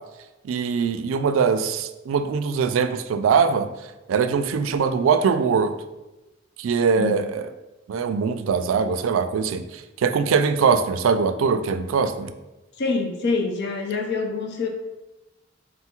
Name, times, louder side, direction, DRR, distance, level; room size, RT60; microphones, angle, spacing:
voice 1, 0.4-3.7 4.1-5.8 6.6-7.5 7.9-12.3, right 5 dB, 80° right, 10 dB, 0.3 m, -22 dB
voice 2, 12.8-14.7, left 4 dB, 60° left, 3 dB, 0.5 m, -26 dB
4.0 x 2.3 x 4.3 m, 1.0 s
head